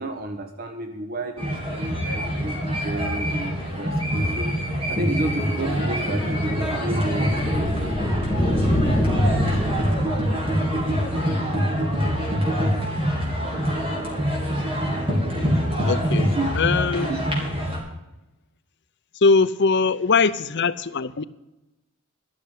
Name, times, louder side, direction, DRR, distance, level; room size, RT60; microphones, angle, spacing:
voice 1, 0.0-3.9 4.2-4.5 4.9-7.9 8.4-9.5 10.7-10.8 16.4-16.5 17.0-17.2, right 2 dB, 45° right, 6 dB, 1.0 m, -31 dB
sound 1, 1.4-17.8, equal, 25° right, 3.7 m, -25 dB
sound 2, 5.5-11.1, left 1 dB, 10° left, 1.9 m, -27 dB
voice 2, 15.9-17.2 19.1-21.2, left 4 dB, 50° left, 14 dB, 0.6 m, -21 dB
13.0 x 6.9 x 8.2 m, 0.96 s
head